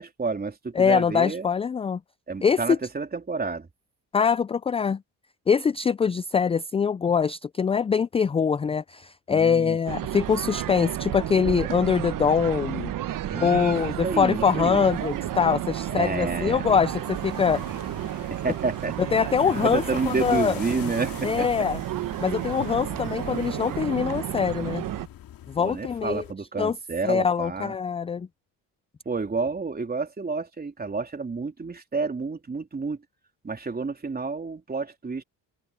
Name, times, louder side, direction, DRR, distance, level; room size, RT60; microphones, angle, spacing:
voice 1, 0.0-1.5 2.3-3.7 9.3-9.8 13.3-13.8 14.0-14.8 15.9-16.7 18.3-19.0 19.6-21.6 25.6-27.7 29.1-33.0 33.4-35.2, right 4 dB, 25° right, 3.5 m, -30 dB
voice 2, 0.8-2.0 2.4-2.8 4.1-5.0 5.5-12.9 13.4-17.6 19.1-20.5 21.2-21.8 22.2-24.9 25.5-26.2 26.6-26.8 27.0-28.3, left 6 dB, 15° left, 0.3 m, -23 dB
sound 1, 9.9-25.1, right 13 dB, 60° right, 1.1 m, -32 dB
sound 2, 14.7-26.3, left 12 dB, 70° left, 2.3 m, -44 dB
open air
cardioid pair, 90°, 36 cm